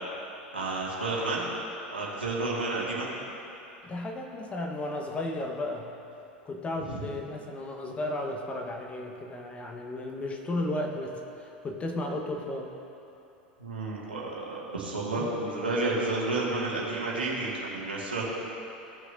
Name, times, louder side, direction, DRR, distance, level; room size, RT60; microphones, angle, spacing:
voice 1, 0.5-1.4 1.9-3.1 6.8-6.9 13.6-18.2, right 2 dB, 85° right, -5 dB, 1.9 m, -31 dB
voice 2, 3.8-5.9 6.4-12.7 15.2-15.3, left 1 dB, 20° left, 2 dB, 1.2 m, -34 dB
16.5 x 6.4 x 2.7 m, 2.9 s
figure-of-eight pair, 85°, 5 cm